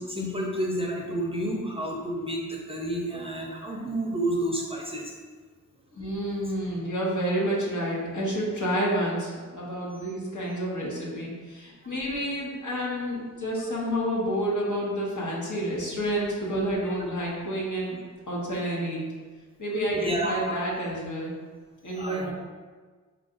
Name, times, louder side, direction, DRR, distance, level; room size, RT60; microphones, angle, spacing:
voice 1, 0.0-5.0 6.0-6.1 20.0-20.6 22.0-22.3, right 1 dB, 15° right, -2 dB, 0.5 m, -30 dB
voice 2, 6.0-18.0 18.3-19.0 19.6-21.3 21.8-22.3, equal, 60° left, -5 dB, 1.2 m, -29 dB
4.5 x 2.5 x 3.8 m, 1.5 s
wide cardioid pair, 95°, 33 cm